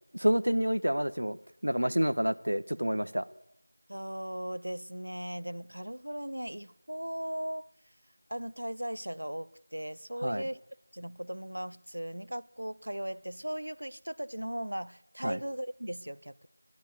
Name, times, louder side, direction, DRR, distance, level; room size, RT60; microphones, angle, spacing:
voice 1, 0.1-1.4 1.6-3.3 10.2-10.4 15.2-15.4, equal, 75° right, 0.8 m, -28 dB
voice 2, 3.9-7.7 8.3-10.6 10.9-16.5, equal, 55° right, 0.4 m, -38 dB
14.5 x 11.5 x 6.6 m
figure-of-eight pair, 180°, 0 cm